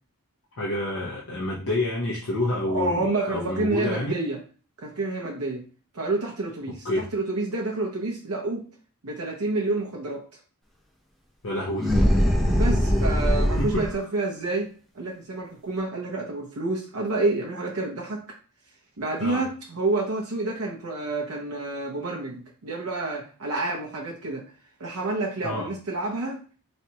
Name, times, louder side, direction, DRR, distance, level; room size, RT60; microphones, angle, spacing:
voice 1, 0.6-4.2 6.8-7.0 11.4-11.9 13.6-13.8 19.2-19.4 25.4-25.7, left 1 dB, 60° left, -5 dB, 0.9 m, -28 dB
voice 2, 2.7-4.4 4.8-5.6 5.9-8.7 9.0-10.2 12.5-18.2 19.0-24.4 24.8-26.4, right 2 dB, 80° right, -2 dB, 0.8 m, -29 dB
sound 1, 11.8-14.0, equal, ahead, 1.0 m, -21 dB
4.2 x 3.2 x 2.8 m, 0.40 s
head